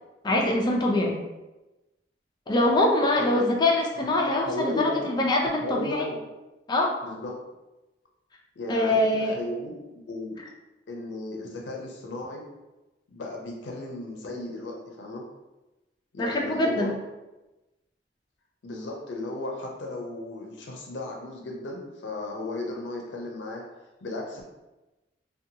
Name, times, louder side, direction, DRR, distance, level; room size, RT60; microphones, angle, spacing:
voice 1, 0.2-1.2 2.5-6.0 6.7-7.0 8.7-9.4 16.2-16.9, left 1 dB, 25° left, -1 dB, 0.3 m, -24 dB
voice 2, 4.3-5.1 5.6-6.2 7.0-7.3 8.6-9.8 10.1-10.4 10.9-12.4 13.1-15.2 16.1-16.9 18.6-23.6 24.0-24.4, left 2 dB, 85° left, 0 dB, 0.5 m, -35 dB
2.6 x 2.2 x 2.7 m, 1.0 s
head